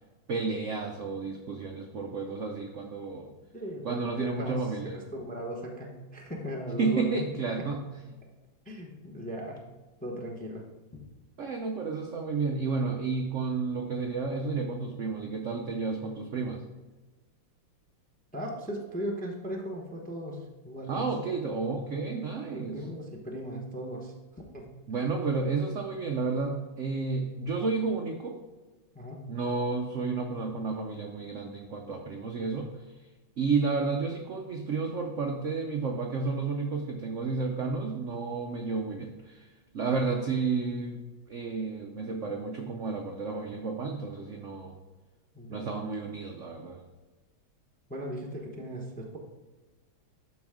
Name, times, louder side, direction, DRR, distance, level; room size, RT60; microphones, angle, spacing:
voice 1, 0.3-3.3 3.8-5.0 6.8-7.8 8.1-8.2 11.4-16.6 20.9-22.8 24.9-28.4 29.3-32.7 33.4-41.0 41.3-44.8 45.5-46.8, right 4 dB, 70° right, 2 dB, 0.7 m, -31 dB
voice 2, 3.5-7.1 7.6-7.7 8.6-9.7 10.0-10.7 18.3-21.1 22.5-24.1 24.5-24.7 28.9-29.3 45.3-45.9 47.9-49.2, equal, 10° left, -1 dB, 0.5 m, -38 dB
12.0 x 4.2 x 3.6 m, 1.2 s
omnidirectional pair, 2.1 m